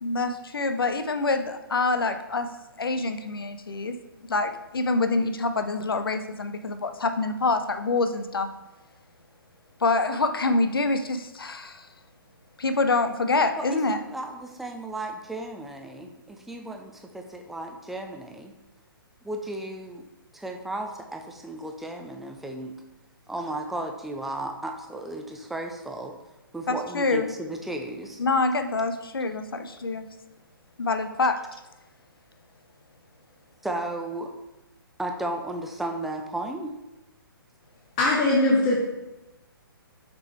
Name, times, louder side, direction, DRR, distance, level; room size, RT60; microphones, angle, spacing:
voice 1, 0.0-2.5 2.8-4.0 4.2-8.5 9.8-11.9 12.6-14.0 26.7-27.3 28.2-30.1 30.8-31.4, left 3 dB, 70° left, 8 dB, 0.7 m, -26 dB
voice 2, 13.6-18.5 19.2-20.1 20.3-22.8 23.3-26.1 26.5-28.2 33.6-34.3 35.0-36.7, right 1 dB, ahead, 3 dB, 0.4 m, -34 dB
voice 3, 38.0-38.8, left 2 dB, 30° left, -5 dB, 1.3 m, -20 dB
6.7 x 5.2 x 3.1 m, 1.0 s
figure-of-eight pair, 130°, 12 cm